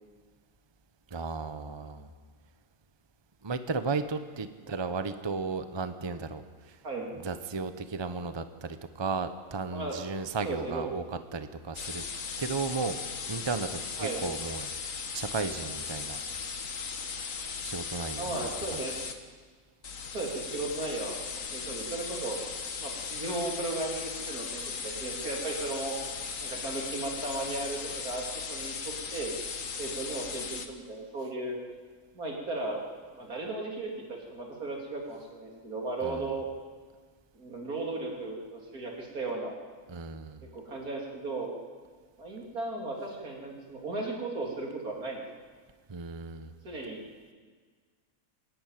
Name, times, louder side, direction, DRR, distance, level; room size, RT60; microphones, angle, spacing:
voice 1, 1.1-2.1 3.4-6.4 6.7-6.8 7.2-11.0 11.3-12.0 12.4-13.0 13.3-14.7 15.1-16.2 17.6-18.8 36.0-36.3 39.9-40.4 45.9-46.5, right 4 dB, 20° right, 10 dB, 0.8 m, -34 dB
voice 2, 10.4-10.8 14.0-14.3 18.2-18.9 20.1-22.4 22.8-26.0 26.4-28.2 28.5-29.3 29.8-31.6 32.1-32.8 33.1-36.5 37.4-39.6 40.5-41.5 42.2-45.3 46.6-47.0, right 2 dB, 85° right, 0 dB, 3.7 m, -36 dB
sound 1, 11.7-19.2 19.8-30.7, left 5 dB, 65° left, 1.7 m, -37 dB
26.5 x 11.0 x 9.1 m, 1.5 s
omnidirectional pair, 1.5 m